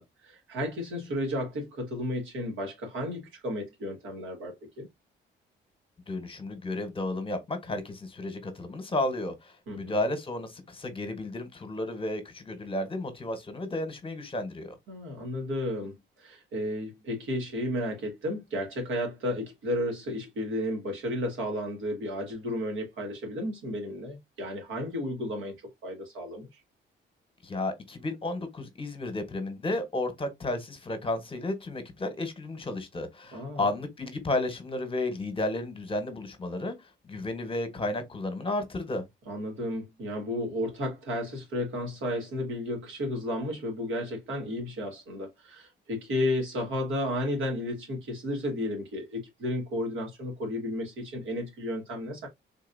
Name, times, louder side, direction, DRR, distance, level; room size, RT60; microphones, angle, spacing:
voice 1, 0.0-4.9 9.7-10.0 14.9-25.5 25.8-26.6 33.3-33.7 39.3-52.3, left 1 dB, 80° right, 1.9 m, -33 dB
voice 2, 6.1-14.7 27.4-36.7 37.0-39.0, left 2 dB, 25° left, 1.2 m, -32 dB
3.8 x 2.7 x 2.6 m
cardioid pair, 90°, 20 cm